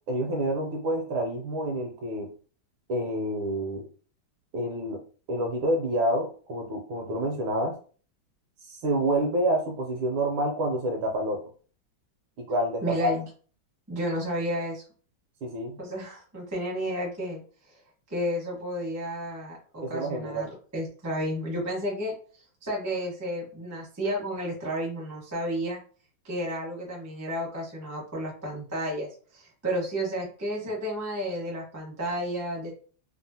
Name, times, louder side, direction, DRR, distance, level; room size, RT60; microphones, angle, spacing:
voice 1, 0.1-2.3 2.9-3.8 4.5-5.0 5.3-7.8 8.7-11.4 12.4-13.1 15.4-15.8 19.8-20.5, right 1 dB, 75° right, 3 dB, 1.3 m, -28 dB
voice 2, 12.8-13.2 13.9-14.8 15.8-17.4 18.1-22.1 22.6-25.8 26.2-32.7, equal, 15° right, -3 dB, 0.5 m, -32 dB
3.5 x 2.1 x 2.7 m, 0.41 s
omnidirectional pair, 2.4 m